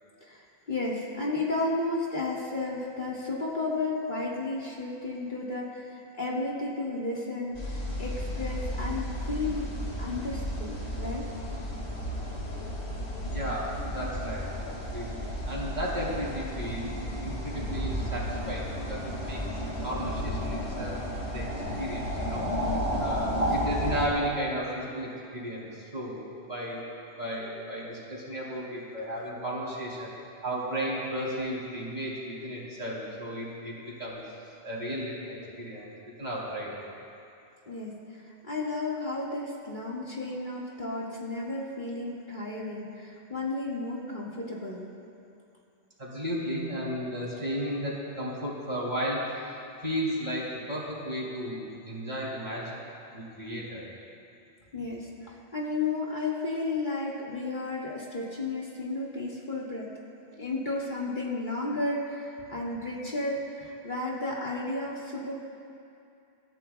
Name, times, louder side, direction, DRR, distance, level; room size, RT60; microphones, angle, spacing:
voice 1, 0.2-9.7 10.0-11.2 23.2-23.5 37.7-44.8 54.7-59.9 60.4-65.4, left 2 dB, 50° left, -5 dB, 2.1 m, -33 dB
sound 1, 7.5-24.1, equal, 80° left, 2.3 m, -33 dB
voice 2, 13.3-16.9 17.2-19.4 19.8-21.0 21.3-21.5 21.8-22.4 23.0-26.9 27.2-30.1 30.4-34.2 34.6-35.9 36.2-36.7 46.0-52.8 53.1-53.8, equal, 40° right, -6 dB, 3.4 m, -34 dB
26.0 x 13.5 x 2.3 m, 2.6 s
omnidirectional pair, 1.1 m